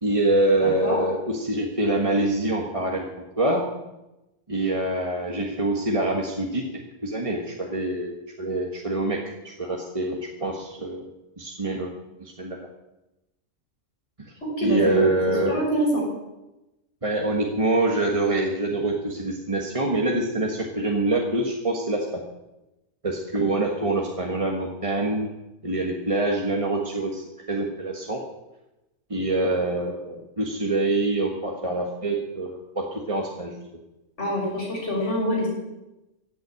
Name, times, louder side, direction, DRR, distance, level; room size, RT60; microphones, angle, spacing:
voice 1, 0.0-3.6 4.5-6.6 7.0-12.6 14.6-15.6 17.0-22.2 23.0-25.3 25.6-28.2 29.1-33.6, right 2 dB, 25° right, -1 dB, 1.6 m, -25 dB
voice 2, 0.6-1.0 14.4-16.0 34.2-35.5, right 1 dB, 55° left, -4 dB, 6.5 m, -25 dB
15.5 x 7.7 x 8.9 m, 0.99 s
omnidirectional pair, 1.4 m